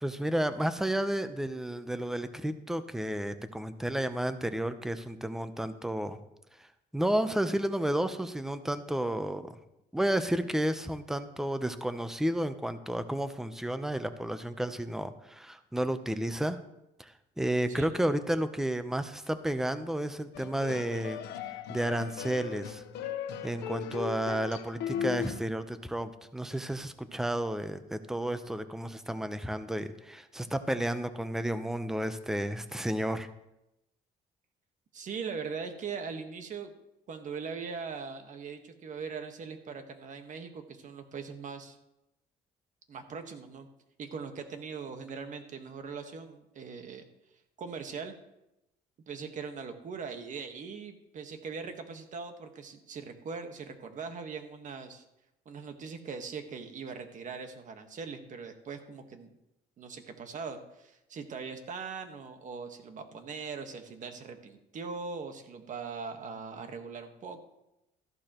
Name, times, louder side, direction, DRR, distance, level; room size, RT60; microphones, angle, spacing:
voice 1, 0.0-6.2 6.6-6.7 6.9-9.5 9.9-16.6 17.0-21.2 21.7-22.8 23.4-33.3, right 1 dB, 5° right, 10 dB, 0.7 m, -32 dB
sound 1, 20.3-25.4, left 9 dB, 90° left, 1.0 m, -37 dB
voice 2, 34.9-36.7 37.1-41.8 42.9-43.7 44.0-47.0 47.6-48.1 49.1-55.0 55.4-59.3 59.8-67.5, right 5 dB, 50° right, 6 dB, 1.5 m, -41 dB
14.0 x 11.5 x 3.0 m, 0.89 s
cardioid pair, 110°, 17 cm